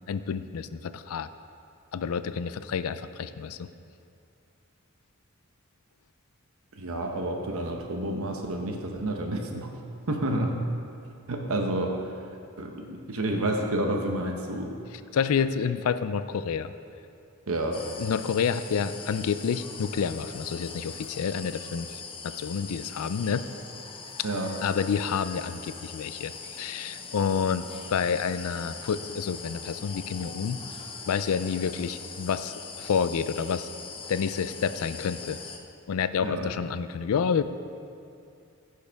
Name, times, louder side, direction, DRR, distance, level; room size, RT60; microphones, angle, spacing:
voice 1, 0.1-1.3 1.9-3.7 15.1-16.7 18.0-23.5 24.6-30.6 31.1-33.7 34.1-35.4 35.9-37.4, left 6 dB, 75° left, 13 dB, 0.4 m, -29 dB
voice 2, 6.7-9.7 10.1-10.6 11.3-12.3 12.6-14.7 17.5-17.8 24.2-24.5 36.2-36.5, right 1 dB, 70° right, 2 dB, 0.8 m, -29 dB
sound 1, 17.7-35.6, left 5 dB, 25° left, 0.6 m, -41 dB
15.0 x 6.5 x 3.5 m, 2.5 s
head